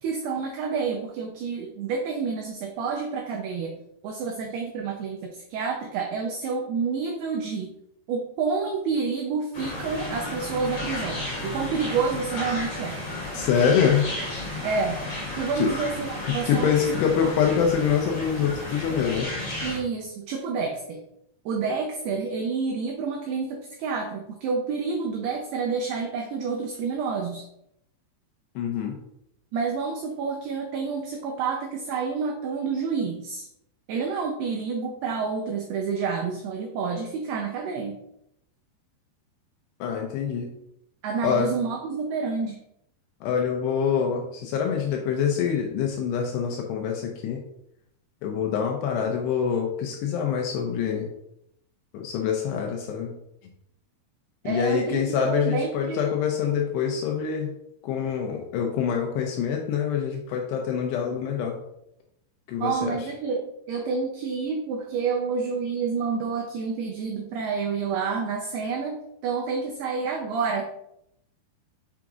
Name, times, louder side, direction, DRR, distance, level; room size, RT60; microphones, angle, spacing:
voice 1, 0.0-3.7 4.0-7.7 8.1-13.0 14.6-15.0 15.4-16.7 19.6-21.0 21.5-27.4 29.5-33.5 33.9-38.0 41.0-42.6 54.4-56.2 62.6-70.6, right 5 dB, 90° right, 2 dB, 2.2 m, -29 dB
sound 1, 9.5-19.8, left 1 dB, 50° left, 1.3 m, -33 dB
voice 2, 13.3-14.0 15.6-15.7 16.5-19.5 28.6-29.0 39.8-40.5 41.2-41.5 43.2-47.4 48.2-51.1 51.9-53.1 54.4-57.5 57.8-61.6 62.5-63.0, left 7 dB, 85° left, 1 dB, 2.4 m, -25 dB
7.1 x 5.9 x 2.4 m, 0.79 s
omnidirectional pair, 5.5 m